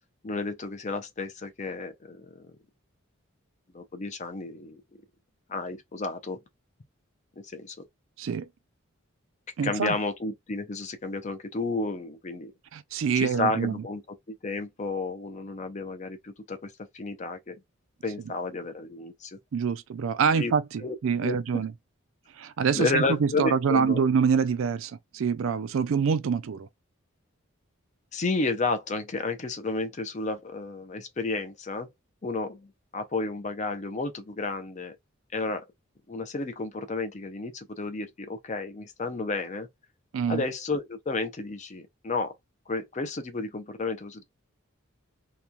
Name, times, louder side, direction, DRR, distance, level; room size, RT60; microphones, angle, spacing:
voice 1, 0.2-2.5 3.7-4.8 5.5-6.4 7.5-7.8 9.6-12.5 13.1-14.0 14.3-17.6 18.0-19.4 20.3-20.5 20.8-20.9 21.2-21.6 22.7-24.0 28.1-31.9 32.2-35.0 35.3-35.7 36.1-39.7 40.3-42.3 42.7-44.2, left 3 dB, 35° left, 0.5 m, -32 dB
voice 2, 9.6-10.0 12.7-13.8 19.5-21.7 22.4-26.7 40.1-40.4, right 6 dB, 70° right, 0.4 m, -26 dB
2.9 x 2.2 x 2.4 m
head